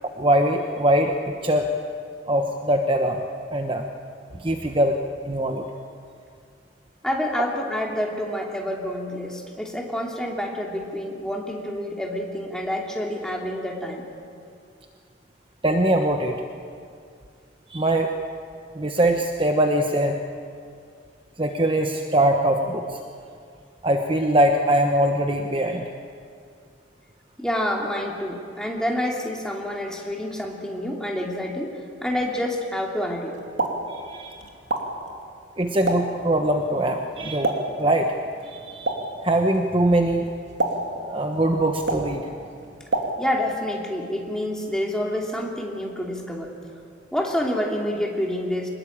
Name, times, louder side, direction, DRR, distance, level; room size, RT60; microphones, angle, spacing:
voice 1, 0.2-1.2 1.4-1.7 2.3-3.2 3.5-3.8 4.4-5.0 5.3-5.7 15.6-16.3 17.7-18.1 18.8-20.1 21.4-22.9 23.8-25.9 33.9-34.3 35.6-38.1 38.5-38.9 39.2-40.3 41.0-42.2, right 1 dB, 25° right, 4 dB, 1.0 m, -22 dB
voice 2, 7.0-14.1 27.4-31.7 32.0-33.4 43.2-46.5 47.1-48.7, left 1 dB, 5° left, -1 dB, 2.8 m, -28 dB
Explosion, 33.3-43.6, right 2 dB, 70° right, 2.9 m, -31 dB
24.5 x 20.5 x 8.8 m, 2.3 s
head